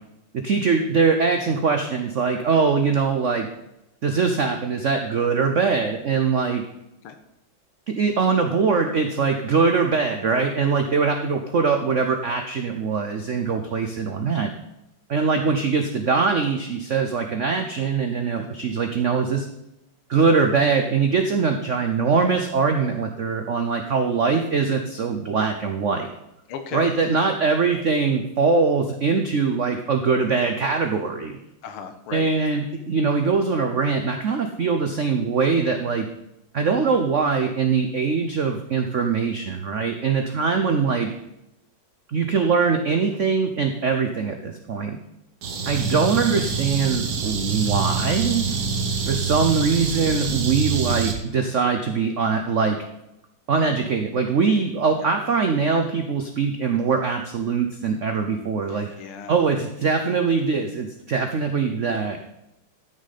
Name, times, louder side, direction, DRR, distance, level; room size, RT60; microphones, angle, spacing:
voice 1, 0.4-3.5 4.0-6.6 7.9-14.5 15.1-19.5 20.1-26.1 26.7-31.3 32.1-36.1 36.5-41.1 42.1-45.0 45.7-48.6 49.1-52.8 53.5-59.0 59.3-62.2, right 5 dB, 75° right, 5 dB, 0.7 m, -22 dB
voice 2, 26.5-27.0 31.6-32.3 50.7-50.8 55.0-55.1 58.7-59.4 60.0-60.2, left 6 dB, 85° left, 7 dB, 2.0 m, -36 dB
sound 1, 45.4-51.1, right 5 dB, 55° right, 1.6 m, -26 dB
13.0 x 6.4 x 4.2 m, 0.86 s
omnidirectional pair, 2.4 m